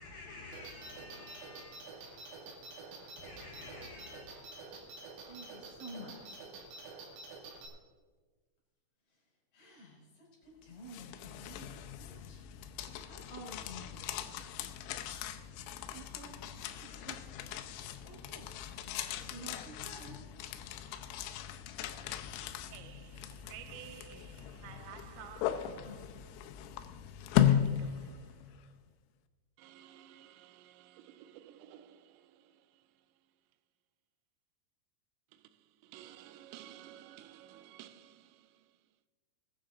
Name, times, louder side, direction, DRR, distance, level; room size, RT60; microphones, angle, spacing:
voice 1, 0.0-2.4 3.2-4.3, left 3 dB, 70° left, 2.2 m, -50 dB
sound 1, 0.5-7.7, right 3 dB, 70° right, 4.4 m, -48 dB
voice 2, 1.4-4.1 5.2-6.4 9.1-12.4 13.1-14.5 15.3-17.7 18.0-18.6 18.8-20.2 25.8-26.3, right 1 dB, 40° left, 5.7 m, -53 dB
sound 2, 10.6-28.6, left 10 dB, 90° left, 3.5 m, -37 dB
voice 3, 22.5-26.0 27.5-28.6 29.6-33.1 35.3-38.8, right 12 dB, 85° right, 3.2 m, -54 dB
21.0 x 10.5 x 3.8 m
omnidirectional pair, 5.9 m